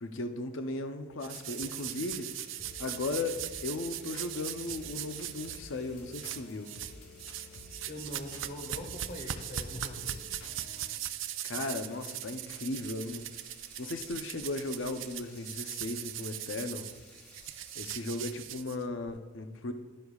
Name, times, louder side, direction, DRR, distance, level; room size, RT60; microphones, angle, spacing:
voice 1, 0.0-2.3 2.8-6.7 11.4-13.3 13.8-16.9 17.8-19.7, left 2 dB, 70° left, 6 dB, 0.7 m, -36 dB
sound 1, 1.2-5.6 6.1-6.9 7.2-19.1, right 12 dB, 70° right, 0.5 m, -40 dB
sound 2, 1.3-18.4, left 1 dB, 15° left, 3.3 m, -57 dB
sound 3, 2.6-10.9, left 2 dB, 85° left, 1.0 m, -51 dB
voice 2, 7.9-10.2, left 1 dB, 50° left, 2 dB, 1.6 m, -43 dB
13.0 x 11.5 x 2.4 m, 1.2 s
head